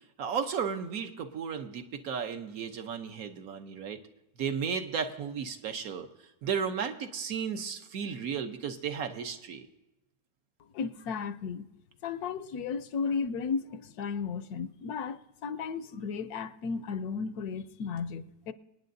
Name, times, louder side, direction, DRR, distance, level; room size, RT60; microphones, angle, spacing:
voice 1, 0.2-4.0 4.4-6.1 6.4-9.7, right 7 dB, 70° right, 1.3 m, -34 dB
voice 2, 10.7-11.7 12.0-18.5, left 5 dB, 75° left, 1.1 m, -34 dB
26.5 x 9.3 x 2.6 m
omnidirectional pair, 1.7 m